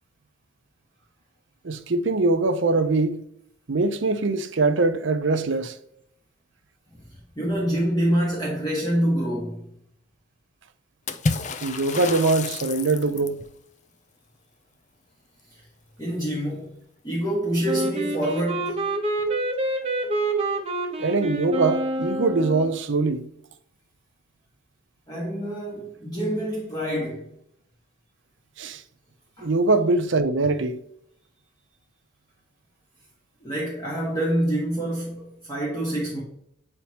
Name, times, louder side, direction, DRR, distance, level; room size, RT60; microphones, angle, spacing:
voice 1, 1.6-3.2 3.7-5.8 11.6-13.4 21.0-23.3 28.6-28.8 29.4-30.8, right 3 dB, 65° right, 0.6 m, -22 dB
voice 2, 7.3-9.7 16.0-16.7 17.0-18.8 25.1-27.3 29.4-29.5 33.4-36.2, right 1 dB, 20° left, 1.5 m, -26 dB
Water / Splash splatter, 11.1-13.4, left 3 dB, 35° left, 0.4 m, -29 dB
Wind instrument woodwind instrument, 17.6-22.7, right 2 dB, 30° right, 0.9 m, -27 dB
8.5 x 4.4 x 2.9 m
head